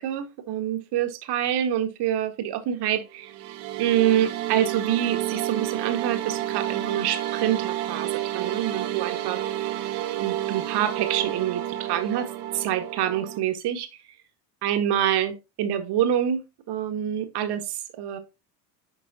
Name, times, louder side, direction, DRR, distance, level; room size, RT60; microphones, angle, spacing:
voice 1, 0.0-3.3 3.8-8.1 8.3-9.4 10.2-12.3 12.5-13.9 14.6-16.4 16.7-18.2, right 10 dB, 50° right, 1.8 m, -26 dB
sound 1, 3.2-13.4, right 13 dB, 70° right, 1.7 m, -30 dB
9.5 x 5.4 x 2.8 m
supercardioid pair, 95°, 49 cm